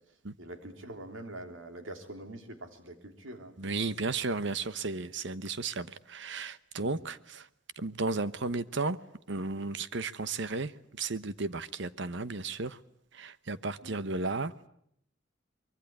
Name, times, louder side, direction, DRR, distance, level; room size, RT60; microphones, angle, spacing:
voice 1, 0.0-3.9 6.8-7.1 13.8-14.0, right 1 dB, 85° right, 6 dB, 3.4 m, -45 dB
voice 2, 3.6-7.5 7.8-9.0 9.3-10.7 11.0-12.8 13.1-14.7, right 3 dB, 65° right, 14 dB, 1.1 m, -34 dB
24.5 x 23.0 x 9.4 m, 0.72 s
head